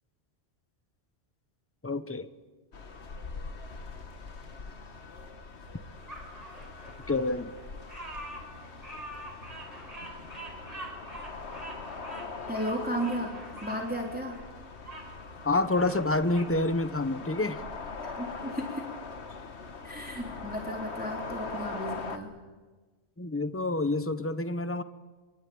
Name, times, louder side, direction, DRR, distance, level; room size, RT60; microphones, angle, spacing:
voice 1, 1.8-2.3 7.1-7.5 15.4-17.6 23.2-24.8, left 2 dB, 10° left, 11 dB, 1.0 m, -28 dB
sound 1, 2.7-22.2, left 4 dB, 75° left, 1.7 m, -42 dB
Bird vocalization bird call bird song, 6.1-15.1 15.5-16.5, right 1 dB, 35° right, 5.0 m, -45 dB
voice 2, 12.5-14.4 18.0-18.9 19.8-22.3, equal, 10° right, 0 dB, 3.5 m, -34 dB
25.0 x 23.0 x 8.7 m, 1.3 s
omnidirectional pair, 1.1 m